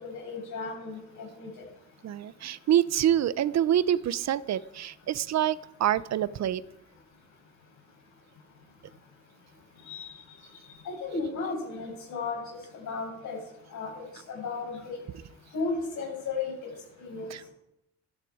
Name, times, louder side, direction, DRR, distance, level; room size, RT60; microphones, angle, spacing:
voice 1, 0.0-1.6 9.9-10.2 10.8-12.4 12.8-13.4 13.7-15.0 15.5-16.5 17.0-17.3, left 4 dB, 80° left, -1 dB, 7.3 m, -34 dB
voice 2, 2.0-6.6 17.3-17.4, right 11 dB, 65° right, 17 dB, 0.7 m, -26 dB
15.0 x 13.0 x 4.9 m, 0.83 s
cardioid pair, 100°, 29 cm